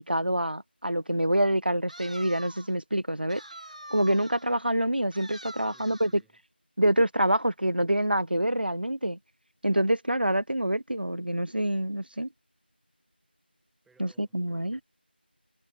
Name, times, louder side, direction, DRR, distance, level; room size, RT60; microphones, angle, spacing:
voice 1, 0.0-3.4 3.9-6.1 6.8-9.2 9.6-12.3 14.0-14.1 14.3-14.8, right 1 dB, 60° right, 1.2 m, -26 dB
sound 1, 1.9-2.8 3.3-4.5 5.1-6.2, right 1 dB, 40° right, 1.9 m, -45 dB
voice 2, 5.5-6.4 13.8-14.8, right 4 dB, ahead, 2.0 m, -64 dB
figure-of-eight pair, 175°, 6 cm